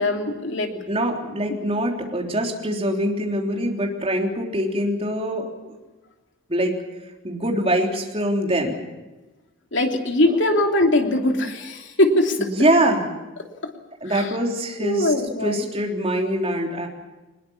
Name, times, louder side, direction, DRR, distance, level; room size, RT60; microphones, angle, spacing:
voice 1, 0.0-0.7 9.7-12.5 13.6-13.7 14.0-14.3 14.8-15.7, left 1 dB, 60° left, 3 dB, 3.0 m, -21 dB
voice 2, 0.7-5.8 6.5-6.7 7.2-8.8 12.4-13.0 14.0-15.1 15.4-16.9, right 1 dB, 30° right, 1 dB, 3.5 m, -23 dB
23.0 x 21.0 x 7.2 m, 1.1 s
head